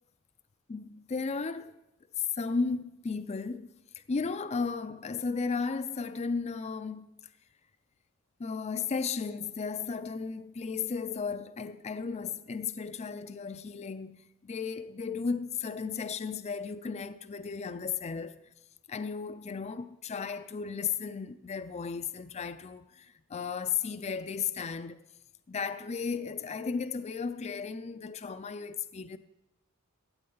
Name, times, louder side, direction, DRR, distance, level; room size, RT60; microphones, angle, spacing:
voice 1, 0.7-1.8 2.2-7.1 8.4-18.4 18.9-25.0 25.5-29.2, left 5 dB, 30° left, 0.4 m, -35 dB
16.0 x 9.2 x 3.9 m
head